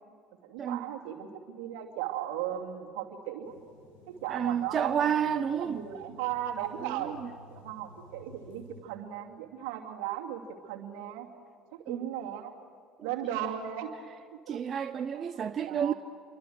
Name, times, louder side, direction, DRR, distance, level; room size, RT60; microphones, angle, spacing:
voice 1, 0.4-3.5 4.1-5.1 5.6-7.2 7.5-11.3 11.7-12.5 13.0-13.9 14.5-14.6 15.1-15.9, right 11 dB, 75° right, 2.6 m, -37 dB
sound 1, 3.4-8.8, left 2 dB, 90° left, 7.7 m, -54 dB
voice 2, 4.3-5.8 6.8-7.3 11.9-12.1 13.0-13.1 14.5-15.9, right 8 dB, 45° right, 0.8 m, -30 dB
28.5 x 24.0 x 6.5 m
hypercardioid pair, 65°, 0 cm